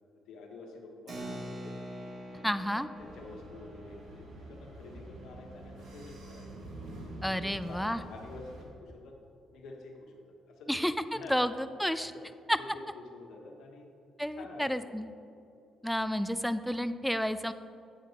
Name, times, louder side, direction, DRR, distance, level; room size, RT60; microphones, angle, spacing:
voice 1, 0.3-1.9 2.3-6.5 7.1-9.1 9.5-10.1 10.6-10.8 11.1-11.4 11.9-12.2 12.6-13.9 14.4-15.1, left 3 dB, 80° left, 1 dB, 1.3 m, -48 dB
Keyboard (musical), 1.1-7.1, right 1 dB, 45° right, 1.5 m, -46 dB
voice 2, 2.4-2.9 7.2-8.0 10.7-12.1 12.5-12.6 14.2-15.1 15.8-17.5, equal, ahead, 11 dB, 0.3 m, -31 dB
sound 1, 2.9-8.6, right 1 dB, 70° right, 1.8 m, -47 dB
9.1 x 8.7 x 3.0 m, 2.6 s
cardioid pair, 90°, 0 cm